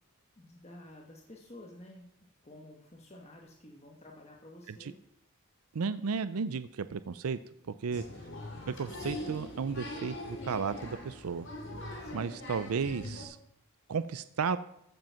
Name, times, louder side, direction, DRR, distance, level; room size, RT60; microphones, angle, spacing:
voice 1, 0.4-2.0 2.4-5.0 7.9-8.3 12.0-12.4, left 1 dB, 30° left, 0 dB, 1.3 m, -52 dB
voice 2, 5.7-7.4 7.8-8.0 8.8-11.5 12.1-13.4 13.9-14.6, right 5 dB, 85° right, 13 dB, 0.5 m, -33 dB
Applause, 7.9-13.2, left 1 dB, 55° left, 3.0 m, -42 dB
14.5 x 7.8 x 5.7 m, 0.78 s
head